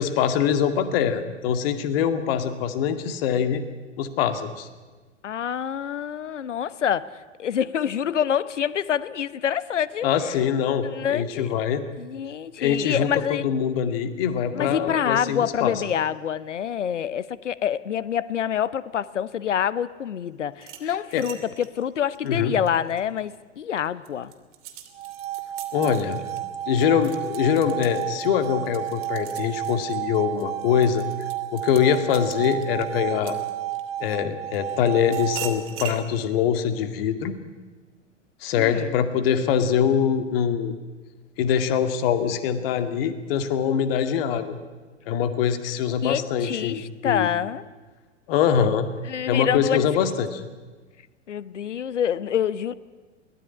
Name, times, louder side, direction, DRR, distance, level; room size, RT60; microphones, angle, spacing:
voice 1, 0.0-3.6 4.0-4.7 10.0-11.8 12.6-15.8 20.8-21.2 22.2-22.5 25.7-26.2 26.7-31.0 31.5-33.4 34.0-37.3 38.4-40.7 41.4-44.5 45.1-47.3 48.3-48.9 49.3-50.4, left 8 dB, 50° left, 2.2 m, -23 dB
voice 2, 5.2-10.4 10.8-11.5 12.0-13.5 14.5-24.3 38.6-38.9 46.0-47.7 49.0-49.9 51.3-52.7, left 9 dB, 70° left, 1.1 m, -27 dB
sound 1, 20.5-23.4 23.8-34.0 34.5-36.0, right 10 dB, 35° right, 2.9 m, -42 dB
sound 2, 24.9-35.8, right 13 dB, 50° right, 1.7 m, -32 dB
23.0 x 18.0 x 9.9 m
figure-of-eight pair, 95°, 37 cm